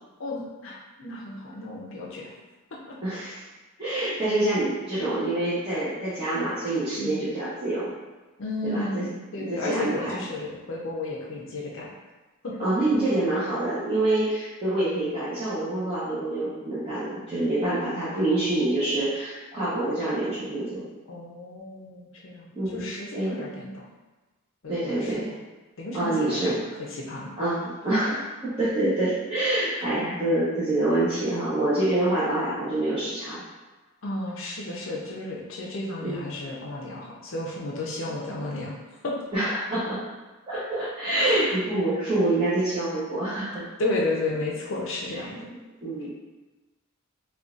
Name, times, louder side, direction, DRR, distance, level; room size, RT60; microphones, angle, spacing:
voice 1, 0.2-2.3 2.7-3.0 7.0-7.2 8.4-11.9 12.4-12.5 17.7-18.4 21.1-23.9 24.6-25.1 25.8-26.6 26.9-27.3 29.8-29.9 34.0-38.7 39.0-39.1 40.8-40.9 41.1-41.5 43.8-45.4, left 2 dB, 60° left, -3 dB, 0.6 m, -33 dB
voice 2, 3.0-3.4 3.8-7.9 8.6-9.0 9.4-10.3 12.6-20.8 22.5-23.4 24.7-25.3 25.9-26.6 27.4-28.3 28.6-33.4 36.0-36.3 38.1-38.2 39.3-40.0 40.5-43.7 45.1-45.2 45.5-46.1, right 1 dB, 25° right, -14 dB, 0.9 m, -26 dB
3.8 x 2.4 x 2.4 m, 1.2 s
head